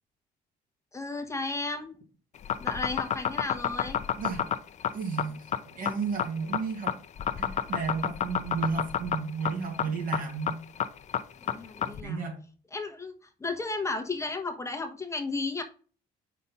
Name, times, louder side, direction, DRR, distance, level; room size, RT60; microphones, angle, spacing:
voice 1, 0.9-2.0 2.6-4.0 11.5-12.3 12.7-13.1 13.4-15.6, left 3 dB, 15° left, 1.1 m, -34 dB
sound 1, 2.4-12.0, left 9 dB, 45° left, 0.6 m, -29 dB
voice 2, 4.9-7.0 7.4-10.6 11.9-12.4, right 5 dB, 55° right, 2.1 m, -33 dB
5.3 x 4.4 x 5.4 m
cardioid pair, 110°, 17 cm